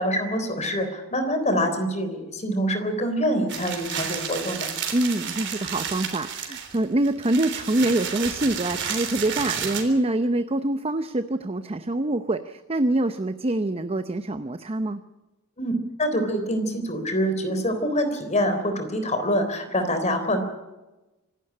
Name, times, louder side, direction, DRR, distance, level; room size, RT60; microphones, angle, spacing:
voice 1, 0.0-4.7 15.6-15.7 16.0-20.4, equal, 35° left, 8 dB, 3.6 m, -25 dB
sound 1, 3.5-9.8, right 7 dB, 60° right, 3.6 m, -31 dB
voice 2, 4.9-15.0, right 1 dB, 30° right, 10 dB, 0.7 m, -25 dB
25.5 x 12.0 x 9.8 m, 1.1 s
head